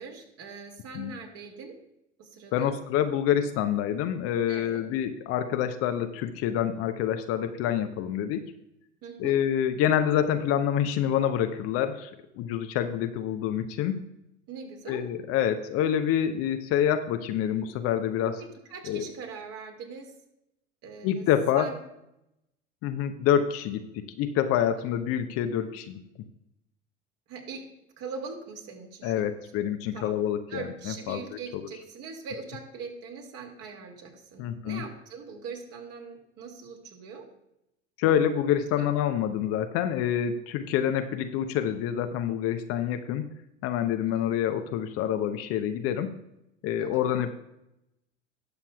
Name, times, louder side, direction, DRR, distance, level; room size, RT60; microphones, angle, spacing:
voice 1, 0.0-1.8 2.2-2.7 4.5-4.8 9.0-9.4 14.5-15.0 18.4-20.1 20.8-21.3 21.5-21.8 27.3-27.6 28.0-29.3 29.5-29.6 29.9-30.2 30.5-37.3 38.8-38.9 46.8-47.1, right 5 dB, 45° right, 2 dB, 2.3 m, -41 dB
voice 2, 2.5-8.5 9.2-14.0 14.9-18.4 18.9-19.1 21.0-21.7 22.8-26.0 29.0-31.2 31.5-31.6 34.4-34.8 38.0-43.3 43.6-46.1 46.6-47.3, left 9 dB, 40° left, 8 dB, 0.8 m, -27 dB
19.5 x 7.0 x 2.3 m, 0.84 s
figure-of-eight pair, 75°, 36 cm